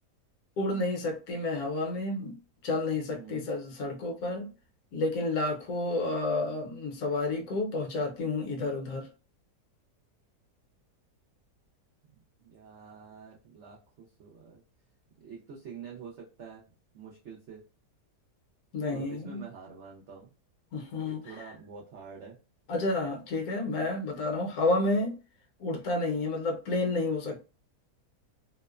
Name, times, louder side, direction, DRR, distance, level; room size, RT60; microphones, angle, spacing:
voice 1, 0.6-2.4 2.6-4.5 4.9-9.1 18.7-19.4 20.7-21.3 22.7-25.1 25.6-27.4, left 2 dB, 65° left, 1.1 m, -30 dB
voice 2, 3.1-3.5 12.4-14.6 15.2-16.7 16.9-17.6 18.9-20.3 21.0-22.4, right 6 dB, 70° right, 0.6 m, -47 dB
2.9 x 2.1 x 2.3 m
omnidirectional pair, 1.8 m